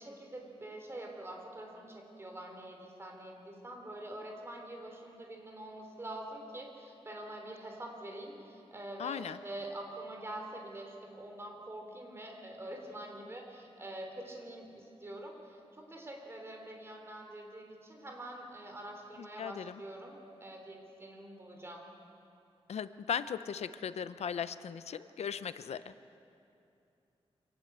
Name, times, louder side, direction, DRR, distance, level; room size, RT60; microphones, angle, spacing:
voice 1, 0.0-21.9, right 1 dB, 25° right, 2 dB, 3.6 m, -45 dB
voice 2, 9.0-9.4 19.2-19.8 22.7-25.9, left 7 dB, 90° left, 13 dB, 0.7 m, -38 dB
25.0 x 19.0 x 8.1 m, 2.7 s
wide cardioid pair, 150°, 11 cm